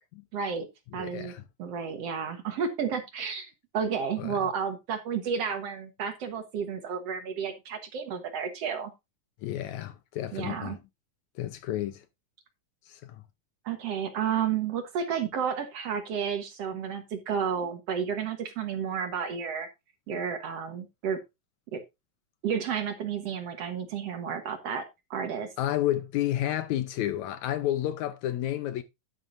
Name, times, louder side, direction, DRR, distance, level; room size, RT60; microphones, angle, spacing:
voice 1, 0.3-0.7 0.9-1.3 1.6-8.9 10.3-10.8 13.7-19.7 20.1-21.2 21.7-21.8 22.4-25.5, right 7 dB, 60° right, 2.0 m, -31 dB
voice 2, 0.9-1.4 4.2-4.4 9.4-10.8 11.4-12.0 12.9-13.2 25.6-28.8, left 13 dB, 75° left, 1.9 m, -31 dB
10.5 x 9.8 x 2.5 m
omnidirectional pair, 3.7 m